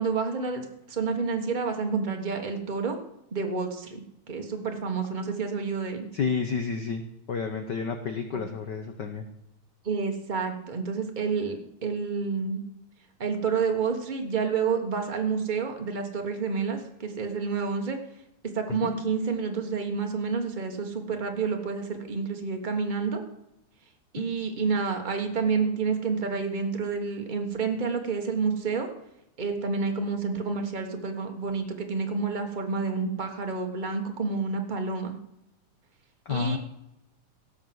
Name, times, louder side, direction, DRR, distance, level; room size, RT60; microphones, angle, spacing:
voice 1, 0.0-3.0 3.3-6.1 8.3-8.4 9.8-12.6 13.2-18.0 18.5-23.2 24.1-28.9 29.4-35.2 36.3-36.6, right 5 dB, 90° right, 4 dB, 0.4 m, -29 dB
voice 2, 6.1-7.0 7.3-9.2 18.7-18.9 24.2-24.3 36.2-36.6, left 5 dB, 85° left, 7 dB, 0.9 m, -30 dB
17.0 x 6.6 x 7.8 m, 0.85 s
omnidirectional pair, 3.4 m